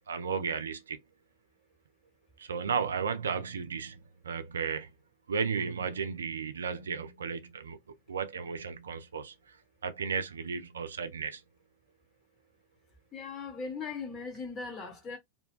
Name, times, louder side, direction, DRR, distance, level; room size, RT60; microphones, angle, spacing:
voice 1, 0.1-1.0 2.4-4.0 4.2-4.9 5.3-7.8 8.1-9.3 9.8-11.4, right 6 dB, 70° right, 0.4 m, -34 dB
voice 2, 13.1-15.2, left 4 dB, 25° left, 1.1 m, -39 dB
2.7 x 2.2 x 2.2 m
figure-of-eight pair, 90°, 0 cm